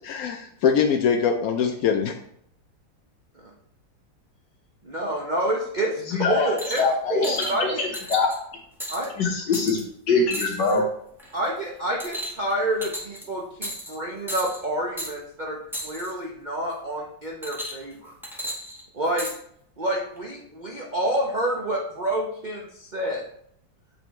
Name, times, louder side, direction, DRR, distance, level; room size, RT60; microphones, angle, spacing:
voice 1, 0.0-2.1, left 7 dB, 85° left, 4 dB, 0.7 m, -22 dB
voice 2, 4.8-6.8 7.1-7.9 8.9-9.1 11.3-18.1 18.9-19.3 19.8-23.2, right 1 dB, 80° right, -1 dB, 0.4 m, -28 dB
voice 3, 6.1-8.3 9.2-10.8, left 4 dB, 65° left, 0 dB, 1.7 m, -24 dB
sound 1, 6.6-6.9 7.2-7.5 7.9-8.4 8.8-9.0 9.5-9.8 10.3-10.8 11.2-11.5 12.0-12.5 12.8-13.2 13.6-13.9 14.3-14.6 15.0-15.1 15.7-16.1 17.4-17.9 18.2-19.3 20.2-20.3, equal, ahead, 0.8 m, -34 dB
7.6 x 4.0 x 3.1 m, 0.68 s
omnidirectional pair, 2.1 m